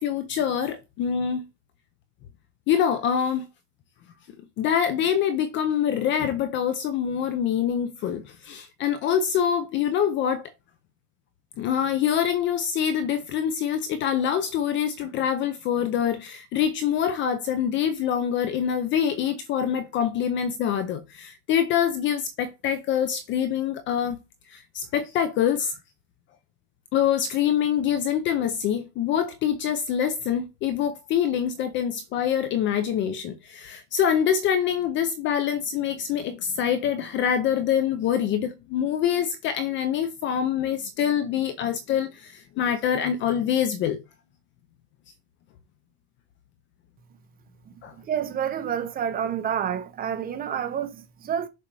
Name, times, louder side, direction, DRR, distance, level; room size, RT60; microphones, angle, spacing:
voice 1, 0.0-1.5 2.7-3.5 4.6-10.5 11.6-24.2 24.5-25.8 26.9-44.0 47.8-47.9, left 9 dB, 25° left, 0.5 m, -25 dB
voice 2, 48.0-51.5, right 8 dB, 20° right, 0.7 m, -29 dB
6.8 x 5.4 x 4.7 m
supercardioid pair, 170°, 46 cm